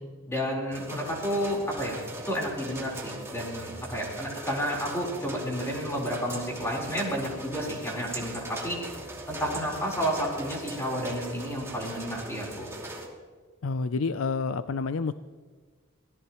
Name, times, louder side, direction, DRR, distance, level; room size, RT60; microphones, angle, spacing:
voice 1, 0.3-8.8 9.3-12.7, equal, 15° left, -2 dB, 4.1 m, -31 dB
sound 1, 0.7-13.1, right 1 dB, 15° right, 2.6 m, -40 dB
voice 2, 13.6-15.1, left 4 dB, 80° left, 12 dB, 0.5 m, -28 dB
25.0 x 18.0 x 3.1 m, 1.5 s
head